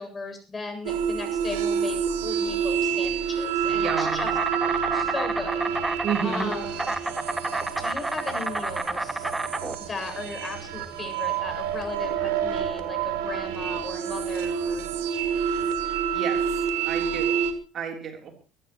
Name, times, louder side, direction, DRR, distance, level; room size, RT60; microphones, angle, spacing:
voice 1, 0.0-4.3 4.9-5.6 6.2-6.9 7.8-9.3 9.8-14.8, left 3 dB, 25° left, 5 dB, 7.6 m, -36 dB
sound 1, 0.9-17.5, right 7 dB, 75° right, 2.2 m, -28 dB
voice 2, 3.7-4.3 6.0-6.5 16.1-16.4 16.9-17.4 17.7-18.3, right 7 dB, 45° right, 4 dB, 3.6 m, -30 dB
Insect, 3.8-13.8, right 2 dB, 10° right, 1.4 m, -31 dB
23.0 x 14.0 x 3.1 m, 0.35 s
hypercardioid pair, 70°, 0 cm